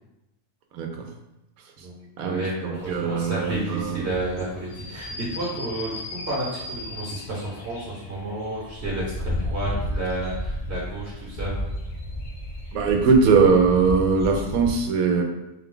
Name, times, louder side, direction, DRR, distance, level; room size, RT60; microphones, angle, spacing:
voice 1, 0.7-1.1 2.2-4.1 12.7-15.2, right 5 dB, 85° right, 2 dB, 1.1 m, -21 dB
voice 2, 1.8-11.6, right 1 dB, 50° right, -6 dB, 1.2 m, -31 dB
sound 1, 2.7-14.7, left 1 dB, 70° left, 1.1 m, -34 dB
4.0 x 2.3 x 3.7 m, 0.94 s
omnidirectional pair, 1.5 m